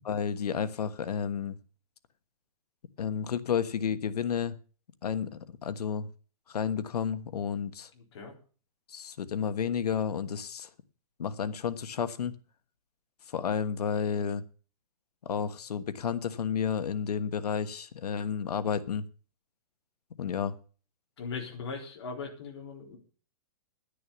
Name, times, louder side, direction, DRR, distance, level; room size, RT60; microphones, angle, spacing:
voice 1, 0.0-1.6 3.0-4.5 5.0-6.1 6.5-7.9 8.9-10.7 11.2-12.4 13.3-14.4 15.2-19.0 20.2-20.5, left 7 dB, 85° left, 1.3 m, -31 dB
voice 2, 8.0-8.3 21.2-23.0, left 4 dB, 45° left, 3.8 m, -39 dB
11.0 x 10.0 x 7.0 m
hypercardioid pair, 180°, 20 cm